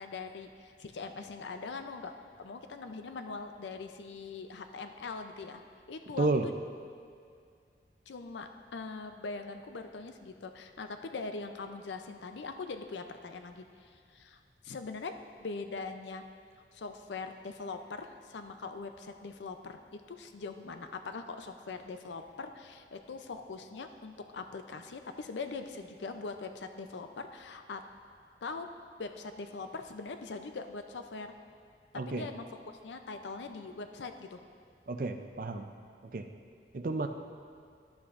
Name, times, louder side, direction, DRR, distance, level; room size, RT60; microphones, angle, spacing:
voice 1, 0.0-5.6 5.9-6.3 8.1-14.4 14.6-15.1 15.4-16.3 16.7-27.8 28.4-28.7 29.0-31.4 32.1-32.5 32.8-34.4, left 4 dB, 85° left, 7 dB, 0.5 m, -42 dB
voice 2, 32.0-32.3 34.9-35.7 36.0-36.3 36.7-37.1, right 3 dB, 50° right, 7 dB, 0.4 m, -31 dB
11.5 x 8.4 x 2.5 m, 2.3 s
head